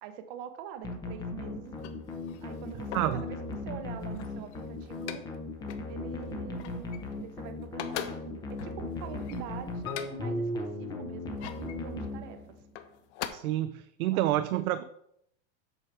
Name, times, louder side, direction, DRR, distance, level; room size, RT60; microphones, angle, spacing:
voice 1, 0.0-1.7 2.4-5.2 5.9-12.4 14.0-14.2 14.5-14.8, right 8 dB, 40° right, 8 dB, 0.8 m, -44 dB
sound 1, 0.8-12.7, left 2 dB, 10° left, 0.6 m, -37 dB
sound 2, 1.6-3.2 3.9-5.4 5.7-5.9 6.2-7.4 7.6-10.4 11.1-11.8 12.6-13.3, left 11 dB, 55° left, 0.9 m, -42 dB
voice 2, 13.3-14.8, right 14 dB, 85° right, 11 dB, 0.6 m, -28 dB
8.0 x 4.6 x 5.9 m, 0.73 s
supercardioid pair, 160°, 42 cm